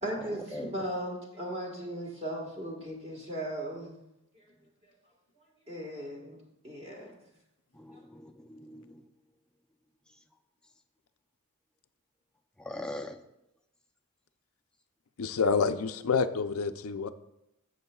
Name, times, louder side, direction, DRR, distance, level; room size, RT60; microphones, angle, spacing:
voice 1, 0.0-4.0 5.7-6.4 6.6-7.1, right 1 dB, 30° right, -1 dB, 1.4 m, -37 dB
voice 2, 7.7-9.0 12.6-13.2, left 1 dB, 5° left, 4 dB, 0.4 m, -41 dB
voice 3, 15.2-17.1, left 5 dB, 65° left, 11 dB, 0.5 m, -28 dB
13.5 x 7.6 x 2.3 m, 0.86 s
head